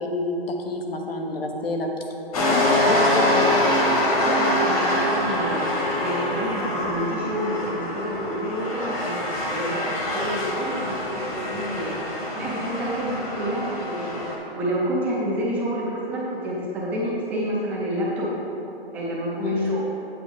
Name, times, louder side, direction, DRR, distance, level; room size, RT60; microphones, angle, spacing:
voice 1, 0.0-1.9 2.5-3.6 19.4-19.8, left 2 dB, 70° left, 2 dB, 1.3 m, -27 dB
sound 1, 2.3-14.4, left 1 dB, 35° left, 1.4 m, -24 dB
voice 2, 4.3-9.2 9.5-11.9 12.3-14.2 14.5-18.3 18.9-19.8, right 1 dB, 5° right, -6 dB, 0.6 m, -28 dB
8.3 x 7.5 x 3.8 m, 2.9 s
hypercardioid pair, 160°, 31 cm